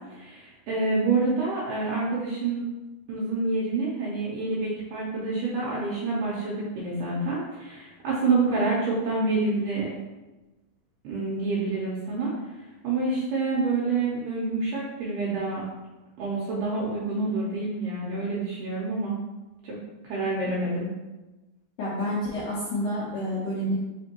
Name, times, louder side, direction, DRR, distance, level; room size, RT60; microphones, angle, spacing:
voice 1, 0.1-2.6 3.1-9.9 11.0-12.3 12.8-15.6 16.2-19.2 19.6-19.8 20.0-20.9, right 3 dB, 75° right, -6 dB, 2.2 m, -27 dB
voice 2, 21.8-23.7, equal, 75° left, -7 dB, 2.0 m, -29 dB
5.2 x 3.4 x 2.8 m, 1.1 s
omnidirectional pair, 4.1 m